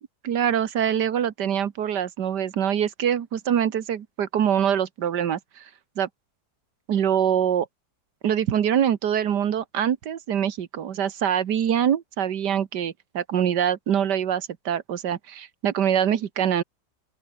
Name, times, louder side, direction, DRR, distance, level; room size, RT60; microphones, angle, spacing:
voice 1, 0.2-5.6 6.0-6.1 6.9-7.7 8.2-16.6, right 9 dB, 90° right, 1.8 m, -24 dB
open air
omnidirectional pair, 1.8 m